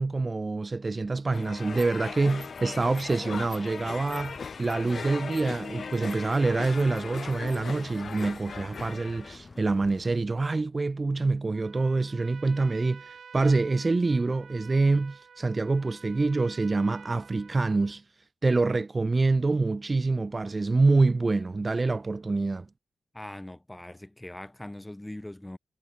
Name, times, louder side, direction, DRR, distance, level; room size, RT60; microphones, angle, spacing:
voice 1, 0.0-18.0 18.4-22.7, right 3 dB, 30° right, 0.5 m, -26 dB
sound 1, 1.3-9.4, left 6 dB, 55° left, 0.4 m, -38 dB
sound 2, 2.3-10.2, left 3 dB, 30° left, 7.9 m, -49 dB
Trumpet, 11.5-18.0, right 6 dB, 60° right, 2.7 m, -50 dB
voice 2, 23.1-25.6, left 1 dB, 10° left, 1.3 m, -41 dB
wide cardioid pair, 125°, 0 cm